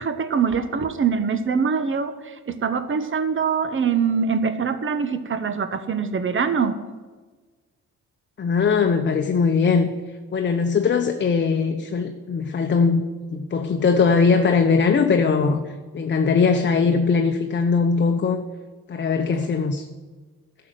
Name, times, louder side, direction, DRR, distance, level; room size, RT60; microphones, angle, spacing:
voice 1, 0.0-6.8, right 6 dB, 40° right, 11 dB, 1.2 m, -23 dB
voice 2, 8.4-13.0 13.3-18.4 18.9-19.9, left 5 dB, 40° left, 5 dB, 0.9 m, -20 dB
12.0 x 6.6 x 9.2 m, 1.3 s
cardioid pair, 90°, 30 cm